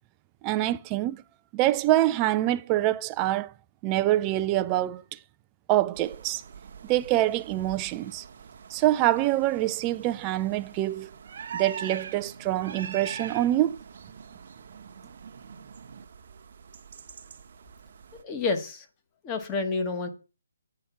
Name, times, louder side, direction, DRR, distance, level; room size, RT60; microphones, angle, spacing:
voice 1, 0.4-1.2 1.5-3.5 3.8-5.2 5.7-6.4 6.8-8.2 8.7-11.1 11.5-13.8, right 15 dB, 20° right, 0.4 m, -25 dB
sound 1, 5.9-18.2, right 7 dB, 45° right, 1.0 m, -43 dB
voice 2, 18.2-18.9 19.2-20.1, left 3 dB, 15° left, 1.2 m, -29 dB
8.6 x 5.8 x 5.8 m
hypercardioid pair, 160°, 0 cm